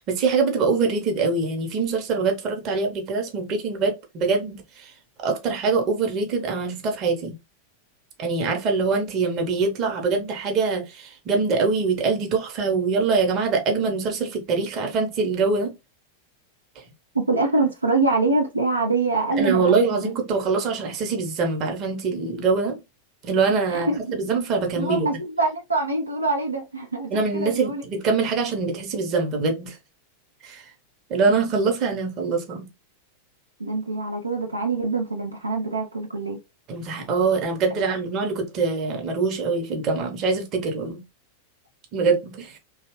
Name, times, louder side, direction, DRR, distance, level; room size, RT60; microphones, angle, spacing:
voice 1, 0.1-4.9 5.2-7.3 8.2-15.7 19.4-22.8 23.2-25.1 27.1-29.8 30.4-30.6 31.1-32.7 36.7-41.0 41.9-42.6, right 4 dB, 35° right, 0.9 m, -24 dB
voice 2, 17.1-20.1 23.7-24.2 24.7-27.8 33.6-36.4, right 3 dB, 80° right, 0.5 m, -24 dB
2.9 x 2.4 x 3.0 m
figure-of-eight pair, 90°, 0 cm